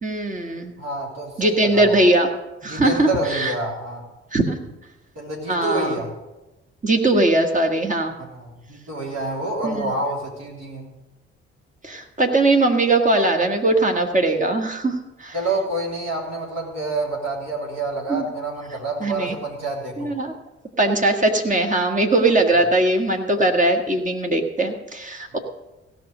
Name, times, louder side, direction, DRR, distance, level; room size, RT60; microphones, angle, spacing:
voice 1, 0.0-0.7 1.4-2.3 2.6-3.5 4.3-4.6 5.5-6.0 6.8-8.2 9.6-9.9 11.8-15.4 18.1-18.2 19.0-19.3 20.0-20.3 20.8-25.4, right 2 dB, 25° right, 3 dB, 1.7 m, -20 dB
voice 2, 0.8-2.0 2.6-4.0 5.1-6.1 8.2-10.9 15.3-20.1, right 2 dB, 50° right, -1 dB, 3.5 m, -28 dB
16.0 x 6.3 x 6.7 m, 1.0 s
figure-of-eight pair, 40°, 33 cm